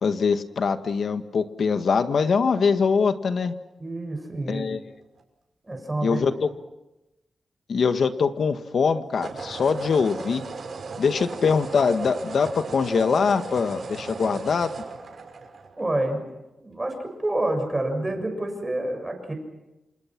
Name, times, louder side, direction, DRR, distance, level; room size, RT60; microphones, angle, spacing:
voice 1, 0.0-3.6 4.5-4.8 6.0-6.5 7.7-10.4 11.0-14.7, left 5 dB, 70° left, 9 dB, 1.6 m, -23 dB
voice 2, 3.8-4.6 5.6-6.2 15.8-16.2 16.6-19.3, right 1 dB, 20° right, 5 dB, 6.8 m, -28 dB
sound 1, 4.9-5.2 9.1-16.2, right 4 dB, 65° right, 5.7 m, -37 dB
28.0 x 27.0 x 6.1 m, 0.97 s
wide cardioid pair, 115°, 0 cm